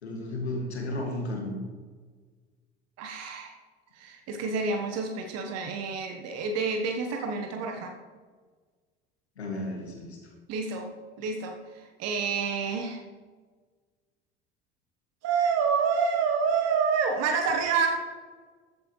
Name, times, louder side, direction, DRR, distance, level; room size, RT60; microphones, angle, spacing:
voice 1, 0.0-1.6 9.4-10.2, left 1 dB, 85° left, 0 dB, 2.1 m, -33 dB
voice 2, 3.0-3.5 3.9-7.9 10.5-13.0 15.2-18.0, right 5 dB, 50° right, 4 dB, 1.3 m, -28 dB
13.5 x 8.4 x 3.2 m, 1.5 s
hypercardioid pair, 65°, 32 cm